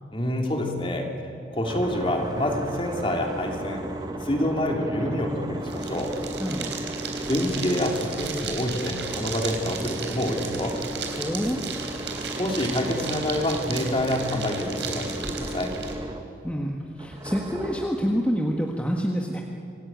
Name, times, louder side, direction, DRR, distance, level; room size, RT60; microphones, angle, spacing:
voice 1, 0.1-1.1 1.5-3.9 4.2-6.1 7.3-10.8 12.4-15.7, left 1 dB, 30° left, 2 dB, 3.2 m, -27 dB
sound 1, 1.6-16.6 17.0-18.0, right 1 dB, 20° right, 1.6 m, -35 dB
sound 2, 5.6-15.9, right 6 dB, 75° right, 3.8 m, -35 dB
voice 2, 6.4-6.8 11.1-11.6 16.4-19.4, equal, 5° left, 0 dB, 1.6 m, -27 dB
27.0 x 18.5 x 9.2 m, 2.9 s
head